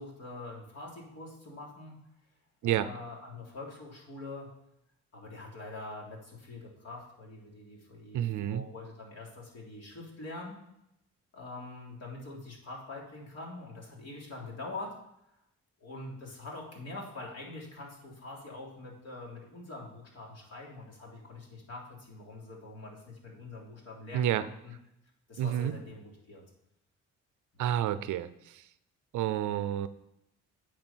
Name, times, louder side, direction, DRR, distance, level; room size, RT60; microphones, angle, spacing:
voice 1, 0.0-1.9 2.6-4.5 5.1-10.6 11.3-14.9 15.8-24.7 25.3-26.5 27.5-27.7, left 2 dB, 55° left, -2 dB, 3.5 m, -44 dB
voice 2, 8.1-8.6 24.1-24.5 25.4-25.7 27.6-28.6 29.1-29.9, right 11 dB, 80° right, 14 dB, 0.6 m, -29 dB
8.9 x 5.0 x 7.3 m, 0.81 s
cardioid pair, 90°, 30 cm